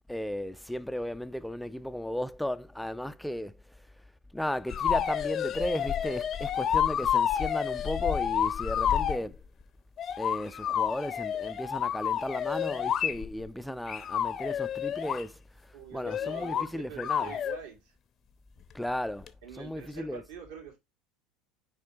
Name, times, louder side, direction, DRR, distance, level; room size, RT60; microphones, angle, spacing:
voice 1, 0.1-3.5 4.3-9.4 10.2-15.4 15.9-17.3 18.7-19.3 19.6-20.2, left 1 dB, 5° left, 0.4 m, -35 dB
sound 1, 4.7-9.2 10.0-13.5 13.9-15.2 16.0-16.7 17.0-17.6 19.3-19.4, left 9 dB, 35° left, 0.7 m, -29 dB
voice 2, 15.7-17.9 19.4-20.8, right 7 dB, 60° right, 2.1 m, -45 dB
5.9 x 4.9 x 3.5 m
figure-of-eight pair, 70°, 0 cm